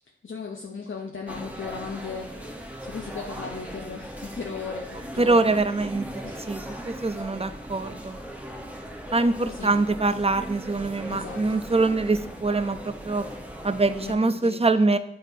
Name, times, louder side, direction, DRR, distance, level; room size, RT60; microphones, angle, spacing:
voice 1, 0.2-2.3 2.8-5.6 6.2-6.6 6.8-7.2 9.4-9.8 11.1-11.6 14.0-14.7, left 5 dB, 85° left, 0 dB, 0.5 m, -37 dB
sound 1, 1.3-14.1, equal, 5° right, 0.9 m, -39 dB
voice 2, 5.2-8.2 9.1-13.3 13.6-15.0, right 3 dB, 30° right, 11 dB, 0.4 m, -24 dB
9.0 x 4.6 x 2.6 m, 0.75 s
wide cardioid pair, 50°, 20 cm